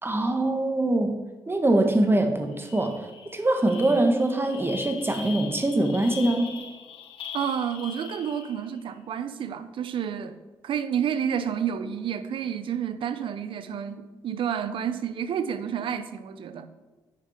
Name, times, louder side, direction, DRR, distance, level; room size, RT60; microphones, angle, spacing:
voice 1, 0.0-1.1 1.5-2.9 3.3-6.6, right 1 dB, 25° right, 1.5 m, -23 dB
sound 1, 1.9-2.1 2.4-8.8, left 7 dB, 85° left, 0.9 m, -41 dB
voice 2, 7.3-10.4 10.6-16.7, right 8 dB, 75° right, 0.6 m, -30 dB
10.0 x 5.0 x 4.4 m
supercardioid pair, 55°, 9 cm